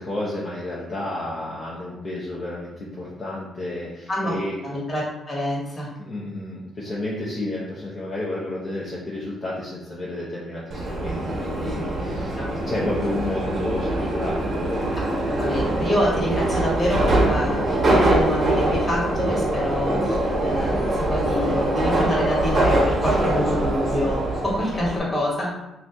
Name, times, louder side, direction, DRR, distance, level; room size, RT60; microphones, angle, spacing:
voice 1, 0.0-4.5 6.0-15.0, left 1 dB, 45° left, -6 dB, 0.7 m, -31 dB
voice 2, 4.6-5.9 12.4-12.5 15.2-25.5, left 1 dB, 25° left, -5 dB, 1.4 m, -26 dB
Subway metro underground, 10.7-25.0, right 1 dB, 45° right, 0.8 m, -23 dB
2.6 x 2.6 x 3.4 m, 0.91 s
cardioid pair, 90°, 0 cm